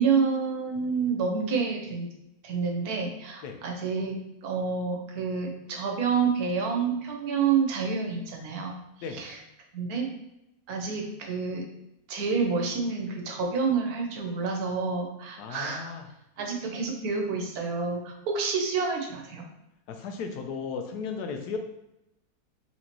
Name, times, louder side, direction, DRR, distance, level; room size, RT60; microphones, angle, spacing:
voice 1, 0.0-2.1 2.4-4.2 4.4-8.8 9.1-9.4 9.7-10.1 10.7-11.7 12.1-15.9 16.4-19.4, right 5 dB, 75° right, 2 dB, 1.2 m, -28 dB
voice 2, 15.4-16.1 19.9-21.6, left 5 dB, 85° left, 5 dB, 1.2 m, -35 dB
4.3 x 3.1 x 2.9 m, 0.87 s
omnidirectional pair, 1.7 m